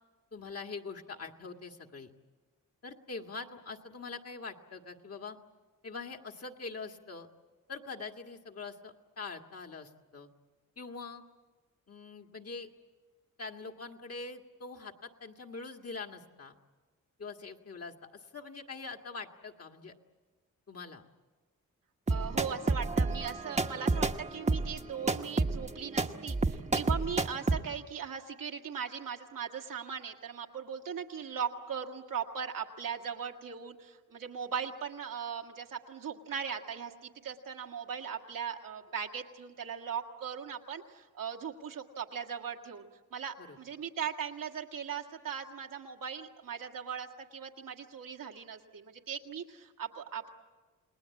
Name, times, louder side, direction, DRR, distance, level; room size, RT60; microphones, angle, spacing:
voice 1, 0.3-2.1 2.8-5.4 5.8-7.3 7.7-10.3 10.8-11.2 11.9-12.7 13.4-16.5 17.2-19.9 20.7-21.0 43.4-43.6, left 4 dB, 50° left, 3 dB, 1.9 m, -43 dB
sound 1, 22.1-27.6, right 3 dB, 20° right, 1.0 m, -30 dB
voice 2, 22.1-50.3, right 7 dB, 85° right, 2 dB, 2.0 m, -39 dB
29.5 x 19.5 x 8.4 m, 1.3 s
cardioid pair, 80°, 32 cm